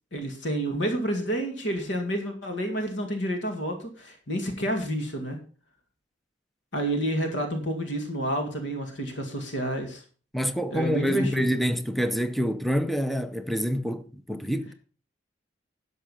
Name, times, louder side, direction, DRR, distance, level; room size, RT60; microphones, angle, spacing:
voice 1, 0.1-5.4 6.7-10.0 10.7-11.5, right 1 dB, 65° left, 2.2 m, -29 dB
voice 2, 10.3-14.7, equal, ahead, 0.6 m, -27 dB
11.0 x 6.5 x 5.5 m
head